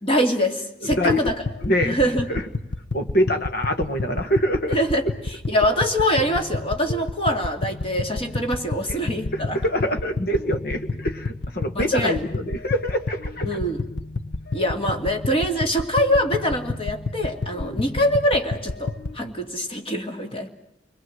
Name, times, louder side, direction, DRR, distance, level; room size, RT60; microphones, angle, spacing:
voice 1, 0.0-1.4 1.8-2.3 4.7-5.0 5.5-9.6 11.7-12.2 13.4-13.8 14.5-20.5, equal, 30° left, 4 dB, 2.6 m, -24 dB
voice 2, 0.8-1.2 1.6-2.0 2.3-2.4 2.9-4.8 6.9-7.0 8.9-9.0 9.3-13.6 17.6-17.8 19.2-19.3, equal, 55° left, 7 dB, 1.8 m, -25 dB
sound 1, 0.9-19.2, left 3 dB, 75° left, 1.1 m, -31 dB
29.0 x 21.5 x 7.9 m, 0.80 s
head